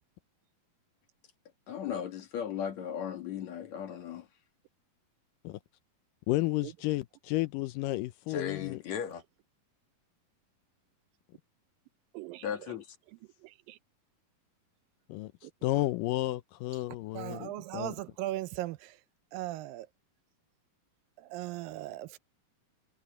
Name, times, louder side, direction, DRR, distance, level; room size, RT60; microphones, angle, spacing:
voice 1, 1.7-4.3 8.3-9.2 12.4-13.0, left 8 dB, 55° left, 2.7 m, -36 dB
voice 2, 6.3-8.8 15.1-15.3 15.6-17.9, left 18 dB, 80° left, 2.1 m, -32 dB
voice 3, 12.1-12.8 13.4-13.8 15.4-15.5 17.1-19.0 19.3-19.9 21.2-22.2, right 16 dB, 85° right, 2.4 m, -39 dB
omnidirectional pair, 4.1 m